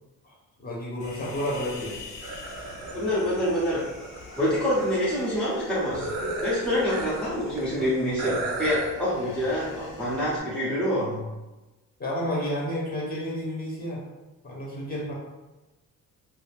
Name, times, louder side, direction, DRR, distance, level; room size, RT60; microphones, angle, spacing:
voice 1, 0.2-2.0 12.0-14.0 14.4-15.1, left 1 dB, 30° left, -4 dB, 0.8 m, -31 dB
Human voice, 1.0-10.4, left 1 dB, 60° left, 0.7 m, -40 dB
sound 1, 2.2-5.0 5.9-7.3 7.6-7.7 8.2-8.9, right 3 dB, 55° right, 0.5 m, -35 dB
voice 2, 2.9-3.9 4.4-6.1 6.4-11.3, equal, 5° left, -9 dB, 0.5 m, -26 dB
2.6 x 2.3 x 3.3 m, 1.1 s
cardioid pair, 165°, 31 cm